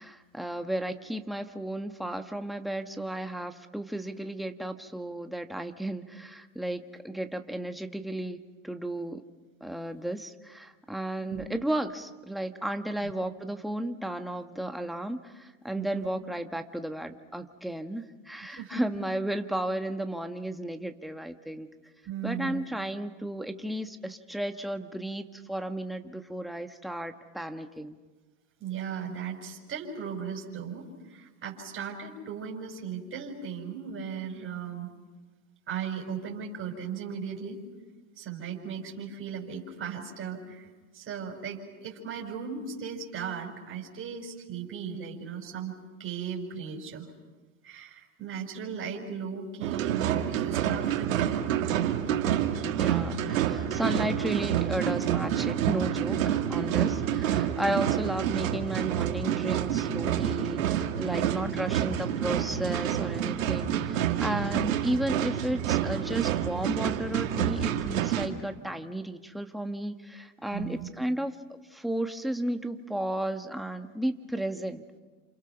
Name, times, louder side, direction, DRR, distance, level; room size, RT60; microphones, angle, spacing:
voice 1, 0.0-8.4 8.6-9.2 9.6-21.7 22.2-28.0 52.7-74.8, right 1 dB, ahead, 6 dB, 1.6 m, -34 dB
voice 2, 15.8-16.1 18.5-18.8 22.1-22.6 28.6-34.9 35.7-37.6 38.2-40.7 40.9-45.7 46.0-47.1 47.6-51.3 56.7-57.0 57.7-57.9 61.1-61.5 64.2-64.6 70.5-70.9, right 7 dB, 30° right, -1 dB, 5.7 m, -37 dB
sound 1, 49.6-68.3, right 10 dB, 85° right, 2.4 m, -28 dB
29.5 x 28.0 x 6.0 m, 1.3 s
hypercardioid pair, 100°, 40 cm